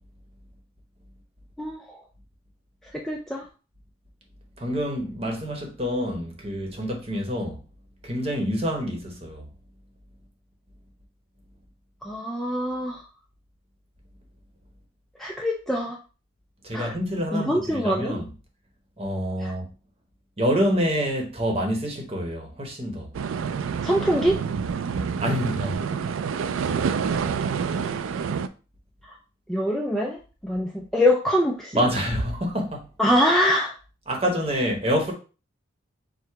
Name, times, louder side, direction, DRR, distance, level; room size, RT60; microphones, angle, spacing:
voice 1, 1.6-2.0 2.9-3.4 12.0-13.0 15.2-16.0 16.7-16.9 17.3-18.2 19.4-19.5 23.8-24.4 29.0-29.2 29.5-31.7 33.0-33.7, equal, ahead, 0.3 m, -24 dB
voice 2, 4.6-7.6 8.0-9.5 16.6-18.3 19.0-19.7 20.4-23.1 25.2-25.8 31.7-32.9 34.1-35.1, equal, 30° right, 0.9 m, -27 dB
sound 1, 23.1-28.5, right 6 dB, 80° right, 0.3 m, -27 dB
4.7 x 2.1 x 4.5 m
head